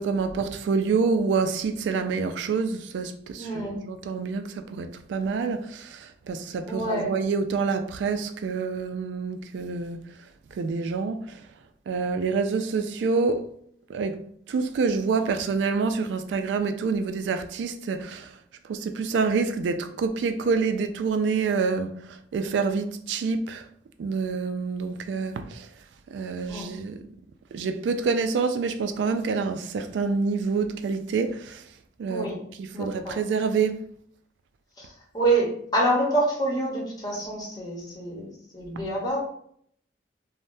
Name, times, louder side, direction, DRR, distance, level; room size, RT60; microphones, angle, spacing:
voice 1, 0.0-10.0 10.6-11.2 11.9-13.5 13.9-14.2 14.5-18.3 18.7-23.6 24.0-25.7 26.1-27.0 27.5-31.6 32.0-32.3 32.6-33.8, right 4 dB, 90° right, 0.3 m, -27 dB
voice 2, 3.4-3.9 6.7-7.1 26.5-26.7 32.1-32.4 32.7-33.2 34.8-39.2, right 1 dB, 25° left, 0.9 m, -27 dB
3.2 x 2.1 x 2.6 m
head